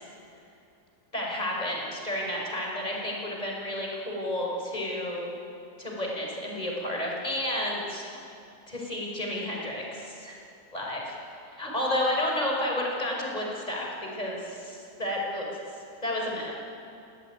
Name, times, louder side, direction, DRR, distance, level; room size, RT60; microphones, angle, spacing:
voice 1, 1.1-5.3 5.8-8.0 8.7-10.4 10.7-11.0 11.5-15.5 16.0-16.5, left 1 dB, 25° left, -2 dB, 5.6 m, -31 dB
29.0 x 18.5 x 9.3 m, 2.7 s
omnidirectional pair, 1.8 m